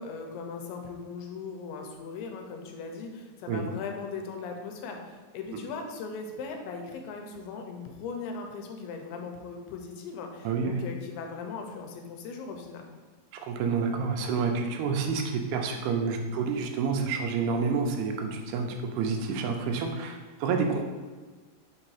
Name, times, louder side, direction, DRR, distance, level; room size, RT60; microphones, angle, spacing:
voice 1, 0.0-12.9, left 5 dB, 85° left, 3 dB, 2.7 m, -39 dB
voice 2, 10.4-10.8 13.4-15.2 15.5-20.8, right 5 dB, 85° right, 3 dB, 2.7 m, -28 dB
6.4 x 2.7 x 5.6 m, 1.3 s
omnidirectional pair, 4.5 m